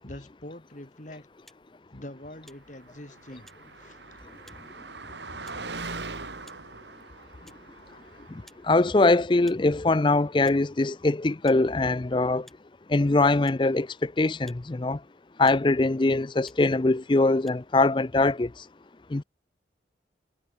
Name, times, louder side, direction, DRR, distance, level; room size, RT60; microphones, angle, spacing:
voice 1, 0.0-1.3 1.9-3.5 3.8-4.0, left 1 dB, 45° left, 2.7 m, -44 dB
sound 1, 1.4-1.6 2.4-2.6 3.4-3.6 4.4-4.6 5.4-5.6 6.4-6.6 7.4-7.6 8.4-8.6 9.4-9.6 10.4-10.6 11.4-11.6 12.4-12.6 13.4-13.6 14.4-14.6 15.4-15.6 16.4-16.6 17.4-17.5, equal, ahead, 6.8 m, -54 dB
Car passing by, 2.7-8.7, right 3 dB, 75° right, 3.8 m, -41 dB
voice 2, 8.7-12.5 12.9-15.0 15.4-18.5 19.1-19.2, left 2 dB, 25° left, 0.5 m, -22 dB
head